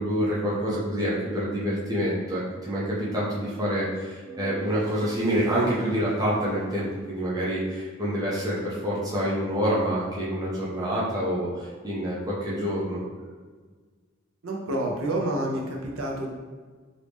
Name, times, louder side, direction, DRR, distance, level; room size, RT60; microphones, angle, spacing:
voice 1, 0.0-13.0, equal, 20° right, -7 dB, 0.6 m, -27 dB
sound 1, 4.2-7.4, right 1 dB, 10° left, 1.2 m, -44 dB
voice 2, 14.4-16.3, right 1 dB, 80° right, 0 dB, 0.7 m, -28 dB
3.1 x 2.6 x 3.4 m, 1.4 s
head